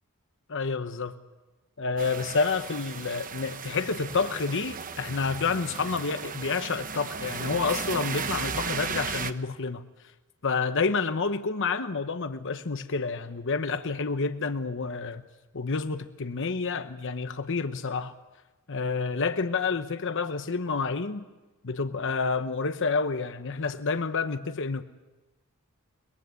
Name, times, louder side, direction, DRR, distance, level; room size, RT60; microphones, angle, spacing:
voice 1, 0.5-1.2 1.8-9.8 10.4-15.2 15.5-18.2 18.7-21.2 21.6-24.8, left 4 dB, 60° left, 0.9 m, -29 dB
sound 1, 2.0-9.3, right 5 dB, 40° right, 1.0 m, -35 dB
23.0 x 21.5 x 8.3 m
head